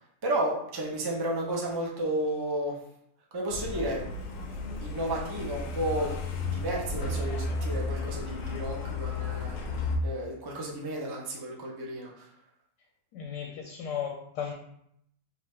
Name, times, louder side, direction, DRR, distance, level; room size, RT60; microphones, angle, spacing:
voice 1, 0.2-2.8 3.3-4.1 4.5-12.3, right 1 dB, 30° right, -2 dB, 0.4 m, -33 dB
Truck, 3.5-10.0, left 3 dB, 65° left, 0.9 m, -33 dB
voice 2, 13.1-14.5, left 8 dB, 85° left, 1 dB, 1.2 m, -35 dB
4.9 x 2.7 x 3.3 m, 0.73 s
omnidirectional pair, 1.8 m